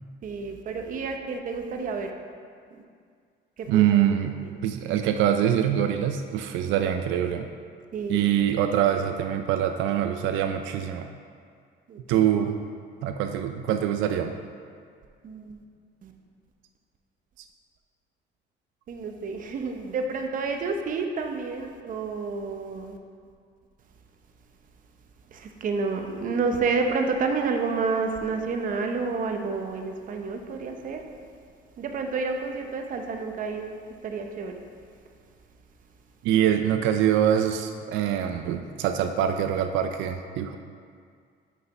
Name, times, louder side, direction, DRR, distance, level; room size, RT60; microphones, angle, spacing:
voice 1, 0.2-2.1 3.6-3.8 7.9-8.2 11.9-12.0 15.2-15.5 16.0-16.1 18.9-23.0 25.3-31.0 31.8-33.7 34.0-34.6, right 4 dB, 45° right, 4 dB, 0.7 m, -29 dB
voice 2, 3.7-7.5 8.1-11.1 12.1-12.6 13.0-14.3 36.2-40.6, right 10 dB, 90° right, 6 dB, 0.4 m, -24 dB
6.6 x 4.8 x 5.4 m, 2.2 s
cardioid pair, 145°, 19 cm